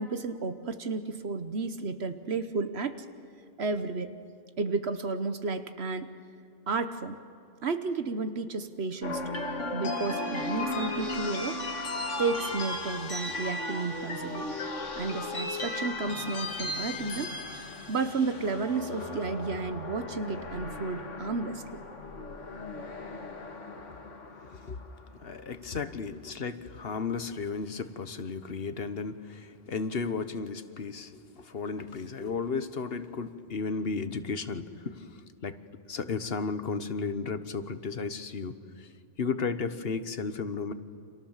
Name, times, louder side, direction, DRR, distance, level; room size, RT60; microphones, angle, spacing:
voice 1, 0.0-3.0 3.6-4.1 4.6-6.1 6.7-7.2 7.6-9.4 9.7-11.6 12.2-14.5 14.9-17.3 17.9-21.8, right 4 dB, 60° right, 10 dB, 1.2 m, -32 dB
sound 1, 9.0-25.2, left 2 dB, 85° left, 2.2 m, -36 dB
voice 2, 25.1-35.6 35.8-38.9 39.2-40.7, left 4 dB, 55° left, 11 dB, 1.3 m, -34 dB
29.5 x 26.0 x 7.4 m, 2.5 s
omnidirectional pair, 1.2 m